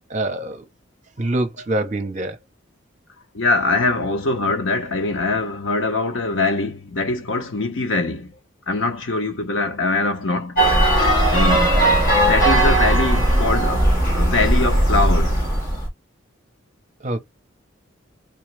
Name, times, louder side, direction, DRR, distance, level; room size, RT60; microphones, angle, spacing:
voice 1, 0.1-0.6 1.2-2.4 17.0-17.2, right 1 dB, 35° right, 0.7 m, -24 dB
voice 2, 3.3-8.4 8.7-10.6 11.3-11.8 12.1-15.4, left 3 dB, 70° left, 0.8 m, -23 dB
sound 1, 10.6-15.9, right 1 dB, 45° left, 1.7 m, -17 dB
3.6 x 2.9 x 3.3 m
head